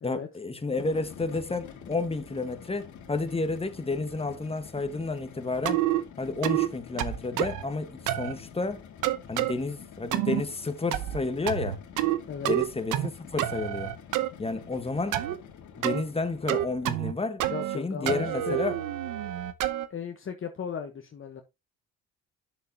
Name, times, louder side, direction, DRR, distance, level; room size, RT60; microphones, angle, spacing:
voice 1, 0.0-5.8 6.2-8.8 9.3-11.8 12.5-13.9 14.4-15.2 15.8-17.4 17.7-18.8, left 3 dB, 20° left, 1.4 m, -31 dB
sound 1, 0.6-17.0, left 7 dB, 75° left, 2.0 m, -48 dB
sound 2, 5.7-6.0 6.4-6.7 7.0-7.6 8.1-8.3 9.0-9.5 10.1-10.4 10.9-11.2 11.5-12.2 12.5-13.1 13.4-14.3 15.1-15.4 15.8-16.0 16.5-17.1 17.4-17.8 18.1-19.9, right 13 dB, 90° right, 0.8 m, -28 dB
voice 2, 17.5-18.6 19.9-21.4, left 7 dB, 45° left, 1.1 m, -36 dB
9.3 x 6.7 x 2.8 m
cardioid pair, 90°, 30 cm